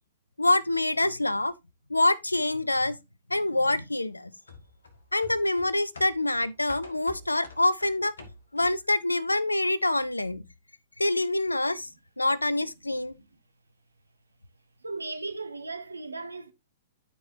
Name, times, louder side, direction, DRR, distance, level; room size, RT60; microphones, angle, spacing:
voice 1, 0.4-1.5 1.9-3.0 3.3-4.3 5.1-8.1 8.5-10.4 11.0-11.9 12.2-13.1, left 2 dB, 80° left, 0.5 m, -26 dB
sound 1, 4.5-8.9 9.3-9.4, left 3 dB, 65° left, 1.6 m, -48 dB
voice 2, 14.8-16.5, right 3 dB, 75° right, 1.0 m, -36 dB
12.5 x 4.6 x 2.7 m
figure-of-eight pair, 110°, 0 cm